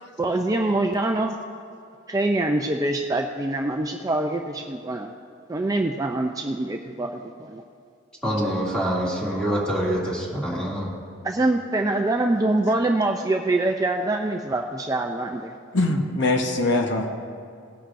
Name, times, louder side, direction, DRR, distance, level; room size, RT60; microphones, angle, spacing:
voice 1, 0.2-1.4 2.1-5.1 5.5-7.6 11.2-15.5, right 2 dB, 20° right, 2 dB, 0.4 m, -24 dB
voice 2, 8.2-10.9, equal, 5° left, -6 dB, 2.4 m, -25 dB
voice 3, 15.7-17.1, left 2 dB, 60° left, 3 dB, 1.0 m, -22 dB
18.5 x 10.0 x 2.6 m, 2.5 s
head